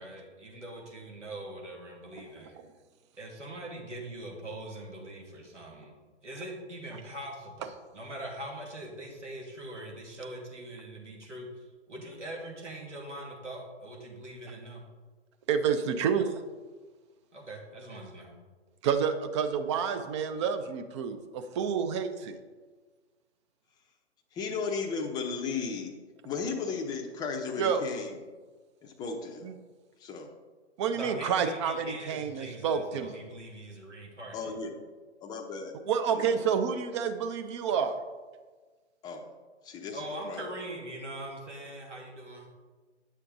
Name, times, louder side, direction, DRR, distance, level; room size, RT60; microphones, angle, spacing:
voice 1, 0.0-2.5 3.2-5.9 6.2-11.5 11.9-14.8 17.3-18.3 30.9-34.5 39.9-42.5, right 1 dB, 85° right, -1 dB, 2.5 m, -42 dB
voice 2, 15.5-16.3 18.8-22.4 27.6-27.8 29.4-29.5 30.8-33.1 35.9-38.0, right 7 dB, 25° right, 8 dB, 0.6 m, -29 dB
voice 3, 24.3-25.9 26.2-28.2 28.8-29.5 30.0-30.3 34.3-34.7 35.2-35.7 36.1-36.5 39.0-39.2 39.6-40.5, left 5 dB, 10° left, 3 dB, 0.7 m, -35 dB
9.7 x 6.4 x 3.9 m, 1.4 s
figure-of-eight pair, 125°, 35 cm